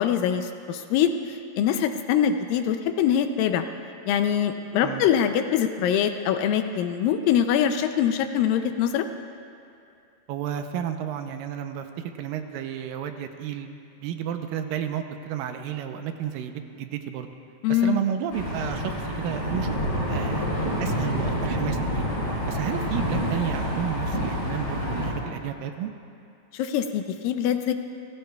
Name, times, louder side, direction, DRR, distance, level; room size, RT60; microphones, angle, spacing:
voice 1, 0.0-3.7 4.1-9.1 17.6-18.0 26.5-27.7, left 9 dB, 80° left, 8 dB, 2.3 m, -23 dB
voice 2, 10.3-13.7 14.0-17.3 17.7-22.1 22.5-25.9, right 9 dB, 85° right, 7 dB, 2.4 m, -32 dB
sound 1, 18.3-25.1, equal, 30° left, 4.5 m, -28 dB
29.5 x 14.5 x 2.3 m, 2.6 s
omnidirectional pair, 4.1 m